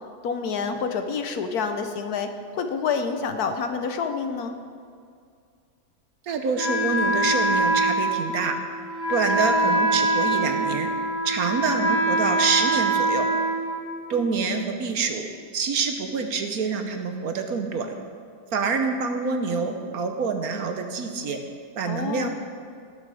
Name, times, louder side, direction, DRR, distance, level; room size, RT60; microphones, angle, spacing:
voice 1, 0.2-4.6 21.9-22.3, left 5 dB, 65° left, 7 dB, 1.1 m, -28 dB
voice 2, 6.3-8.6 9.1-10.9 11.2-13.3 14.1-15.3 15.5-17.9 18.5-21.4 21.7-22.3, right 5 dB, 60° right, 5 dB, 1.2 m, -26 dB
Wind instrument woodwind instrument, 6.6-14.3, right 1 dB, 45° left, 3.3 m, -24 dB
17.5 x 6.7 x 4.8 m, 2.3 s
omnidirectional pair, 1.9 m